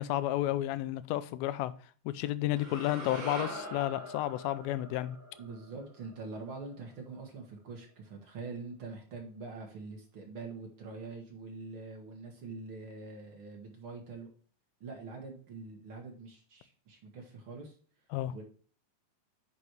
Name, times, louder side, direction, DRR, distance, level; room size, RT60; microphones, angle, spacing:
voice 1, 0.0-1.7 2.1-5.2 18.1-18.3, left 14 dB, 80° left, 2.3 m, -32 dB
sound 1, 2.6-6.8, right 1 dB, 30° right, 4.1 m, -44 dB
voice 2, 5.3-14.3 14.8-17.8 18.3-18.4, right 3 dB, 55° right, 1.4 m, -44 dB
9.5 x 5.4 x 3.0 m
omnidirectional pair, 4.5 m